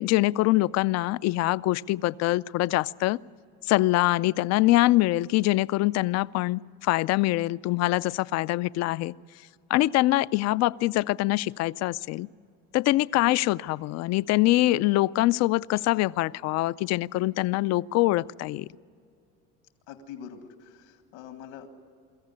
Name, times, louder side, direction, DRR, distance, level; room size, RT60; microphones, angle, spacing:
voice 1, 0.0-3.2 3.7-9.1 9.7-12.3 12.7-18.7, left 18 dB, 50° left, 19 dB, 0.5 m, -24 dB
voice 2, 19.9-21.7, left 8 dB, 90° left, 6 dB, 2.1 m, -44 dB
23.5 x 14.5 x 9.6 m, 2.4 s
supercardioid pair, 115°, 33 cm